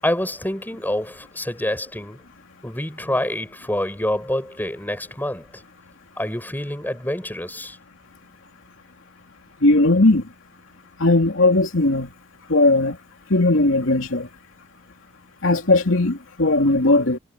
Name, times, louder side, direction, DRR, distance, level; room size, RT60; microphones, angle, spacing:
voice 1, 0.0-2.2 2.6-5.5 6.2-7.8, left 1 dB, 10° left, 7.8 m, -27 dB
voice 2, 9.6-10.2 11.0-12.1 12.5-13.0 13.3-14.3 15.4-17.2, left 2 dB, 70° left, 2.9 m, -18 dB
head